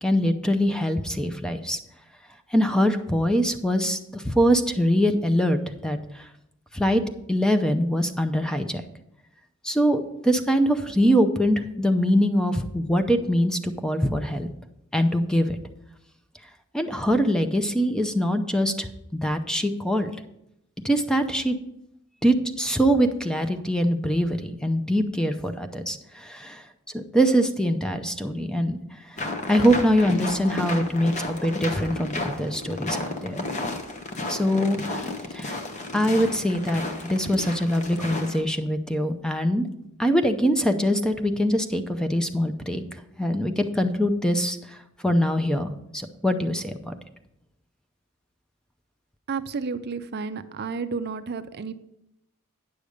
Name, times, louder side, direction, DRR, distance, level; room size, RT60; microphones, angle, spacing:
voice 1, 0.0-1.8 2.5-6.3 6.7-7.0 7.3-8.8 9.6-14.5 14.9-15.6 16.7-20.1 20.8-21.6 22.2-26.6 26.9-28.8 29.1-29.2 29.5-33.4 34.3-35.6 35.9-39.7 40.0-44.8 45.0-46.9, equal, 5° left, 7 dB, 0.6 m, -23 dB
sound 1, 29.2-38.4, left 2 dB, 35° left, 1.0 m, -32 dB
voice 2, 49.3-51.7, right 5 dB, 50° right, 12 dB, 0.5 m, -31 dB
9.4 x 6.8 x 5.0 m, 0.81 s
head